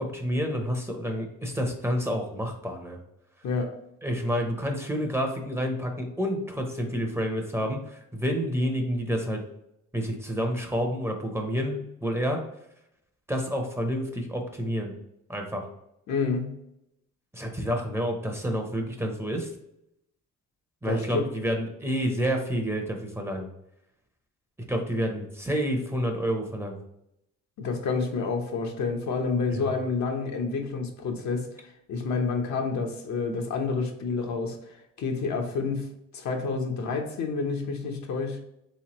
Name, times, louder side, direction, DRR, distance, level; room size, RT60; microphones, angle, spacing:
voice 1, 0.0-3.0 4.0-9.4 9.9-12.4 13.3-14.9 15.3-15.7 17.3-19.5 20.8-23.4 24.7-26.8 29.5-29.6, equal, 10° right, 2 dB, 0.7 m, -29 dB
voice 2, 16.1-16.6 20.8-21.3 27.6-31.5 31.9-34.6 35.0-38.4, left 4 dB, 65° left, 3 dB, 0.8 m, -29 dB
3.4 x 3.2 x 2.9 m, 0.81 s
cardioid pair, 90°, 30 cm